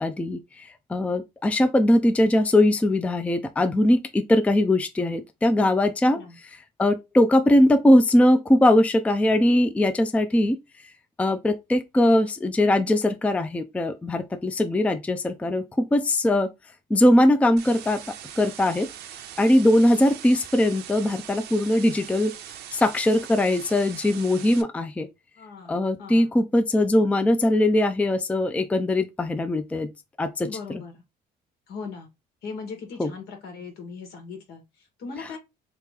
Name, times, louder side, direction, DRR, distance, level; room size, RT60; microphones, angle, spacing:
voice 1, 0.0-6.2 6.8-10.6 11.2-16.5 16.9-18.0 18.4-18.9 19.4-22.3 22.7-25.1 25.7-29.9 30.2-30.8 33.0-33.1, left 1 dB, 10° left, 0.4 m, -21 dB
voice 2, 6.0-6.4 25.4-26.3 30.4-31.0 31.7-32.1 32.4-35.4, left 4 dB, 75° left, 1.5 m, -39 dB
sound 1, 17.6-24.6, right 10 dB, 80° right, 0.6 m, -41 dB
2.9 x 2.8 x 3.5 m
cardioid pair, 110°, 17 cm